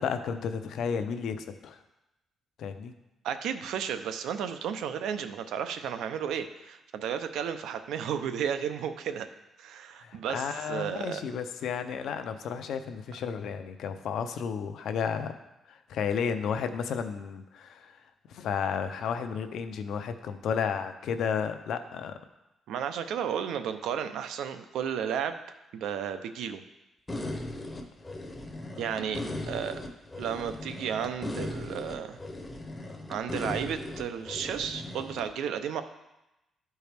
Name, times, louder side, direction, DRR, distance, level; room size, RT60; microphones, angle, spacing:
voice 1, 0.0-1.8 2.6-2.9 10.0-15.3 15.7-17.9 18.3-22.1 29.1-29.5, left 7 dB, 65° left, 8 dB, 0.6 m, -32 dB
voice 2, 3.2-9.3 9.6-11.2 22.7-25.4 25.7-26.6 28.8-29.8 30.2-32.2 33.1-35.8, right 8 dB, 85° right, 9 dB, 0.6 m, -33 dB
sound 1, 27.1-35.2, left 1 dB, 10° left, 0.7 m, -38 dB
12.5 x 4.5 x 3.4 m, 0.95 s
cardioid pair, 175°, 0 cm